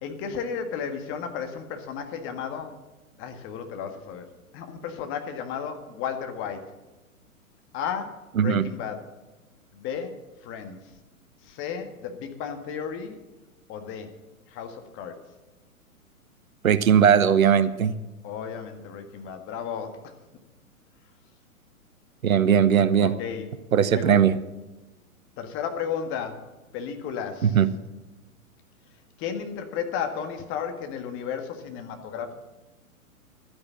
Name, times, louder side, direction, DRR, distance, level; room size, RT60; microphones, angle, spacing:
voice 1, 0.0-2.8 3.2-4.2 4.5-6.7 7.7-9.1 9.7-10.2 10.4-10.9 11.4-13.2 13.7-14.1 14.5-15.2 18.2-20.1 23.0-23.5 23.9-24.1 25.4-27.6 29.2-32.3, left 7 dB, 25° left, 6 dB, 1.7 m, -34 dB
voice 2, 16.6-17.9 22.2-23.1 23.7-24.4 27.4-27.7, right 8 dB, 70° right, 14 dB, 1.0 m, -19 dB
12.5 x 9.8 x 7.4 m, 1.1 s
figure-of-eight pair, 115°, 43 cm